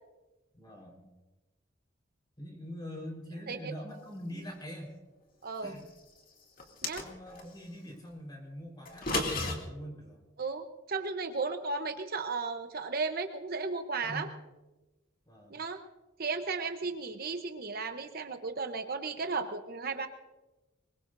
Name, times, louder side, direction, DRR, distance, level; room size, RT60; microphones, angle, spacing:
voice 1, 0.5-1.0 2.4-4.9 5.6-5.9 7.0-10.2 14.0-14.3 15.3-15.6, equal, 20° left, 1 dB, 4.4 m, -43 dB
sound 1, 6.6-7.5 8.8-9.5, left 2 dB, 45° left, 2.4 m, -32 dB
voice 2, 10.4-14.3 15.5-15.8 16.2-20.1, right 4 dB, 50° right, 6 dB, 0.9 m, -35 dB
24.5 x 21.5 x 2.6 m, 1.1 s
head